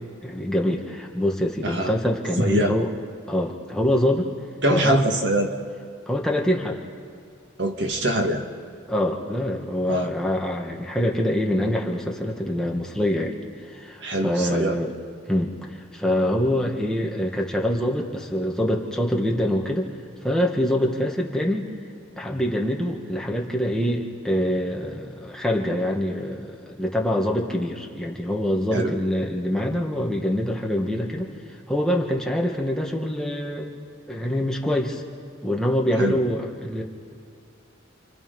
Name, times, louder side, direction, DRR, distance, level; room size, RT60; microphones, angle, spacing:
voice 1, 0.0-2.9 3.3-4.3 4.7-5.0 6.1-6.8 8.9-13.3 13.7-14.9 15.3-19.9 20.2-21.7 22.2-31.3 31.7-33.7 34.1-35.0 35.4-36.8, left 1 dB, 5° left, -1 dB, 1.7 m, -25 dB
voice 2, 1.6-2.0 2.4-2.7 4.6-5.5 7.6-8.4 9.9-10.1 14.0-14.8 28.7-28.9 36.0-36.2, right 1 dB, 60° right, 3 dB, 2.0 m, -23 dB
29.5 x 27.0 x 5.4 m, 2.2 s
head